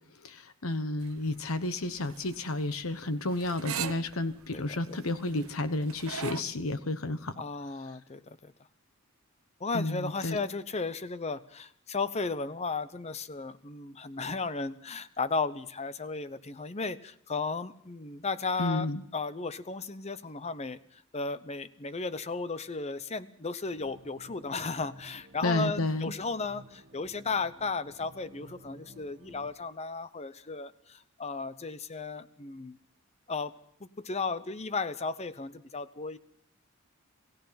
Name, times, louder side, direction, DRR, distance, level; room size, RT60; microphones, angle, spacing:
voice 1, 0.1-7.3 9.7-10.4 18.6-19.0 25.4-26.1, left 2 dB, 80° left, 11 dB, 1.2 m, -31 dB
sound 1, 1.0-6.4, right 8 dB, 90° right, 1.0 m, -41 dB
voice 2, 4.5-5.0 7.4-8.5 9.6-18.9 19.1-20.8 21.1-32.8 33.3-33.5 34.0-36.2, left 4 dB, 30° left, 14 dB, 0.8 m, -35 dB
sound 2, 23.7-29.5, right 1 dB, 45° right, 1.7 m, -54 dB
27.5 x 16.0 x 5.8 m, 0.68 s
head